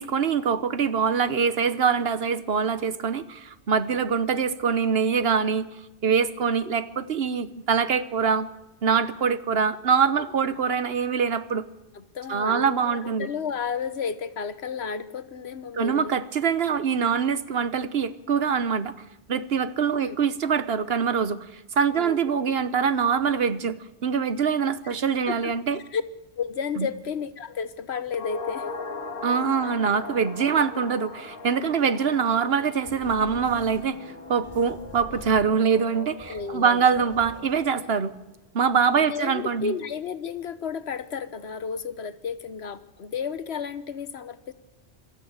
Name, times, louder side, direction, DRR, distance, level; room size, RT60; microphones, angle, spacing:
voice 1, 0.0-5.7 6.0-8.5 8.8-11.6 12.3-13.3 15.7-18.9 19.3-25.8 26.8-26.9 29.2-34.0 34.3-38.1 38.5-39.7, right 6 dB, 65° right, 14 dB, 1.2 m, -24 dB
voice 2, 11.9-16.1 20.0-20.2 22.0-22.2 24.8-24.9 25.3-25.5 25.9-26.0 26.4-28.7 29.6-29.7 31.8-32.0 36.3-36.9 38.9-44.5, left 6 dB, 70° left, 13 dB, 1.3 m, -32 dB
sound 1, 28.1-36.6 36.8-36.9, left 4 dB, 55° left, 1.8 m, -39 dB
sound 2, 32.8-37.9, left 2 dB, 30° left, 4.1 m, -42 dB
24.5 x 13.0 x 8.8 m, 0.96 s
omnidirectional pair, 1.1 m